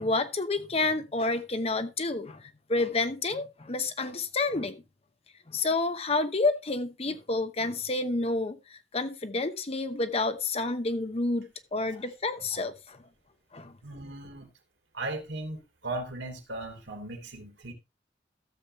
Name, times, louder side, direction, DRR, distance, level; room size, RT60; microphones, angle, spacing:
voice 1, 0.0-4.8 5.5-13.0 13.5-13.7, left 3 dB, 35° left, 0.9 m, -29 dB
voice 2, 13.8-14.5 14.9-17.7, right 2 dB, 80° right, 2.7 m, -37 dB
14.0 x 7.3 x 3.1 m
head